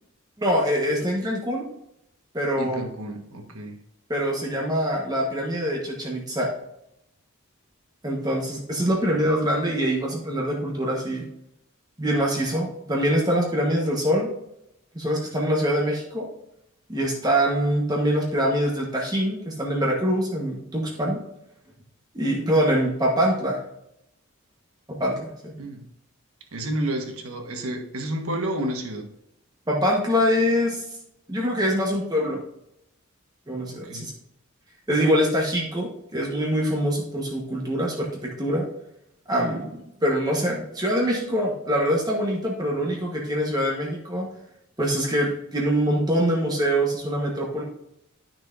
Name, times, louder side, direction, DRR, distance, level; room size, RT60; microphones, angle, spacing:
voice 1, 0.4-1.7 2.3-2.8 4.1-6.5 8.0-11.2 12.0-14.3 14.9-16.3 16.9-21.2 22.1-23.6 24.9-25.5 29.7-30.8 31.3-32.4 33.5-34.1 34.9-38.6 39.3-44.3 44.8-47.6, equal, 20° right, -2 dB, 1.2 m, -24 dB
voice 2, 2.6-3.8 25.6-25.8 26.5-29.1 33.7-34.1, right 1 dB, 85° right, 3 dB, 1.4 m, -31 dB
11.0 x 6.1 x 2.6 m, 0.80 s
head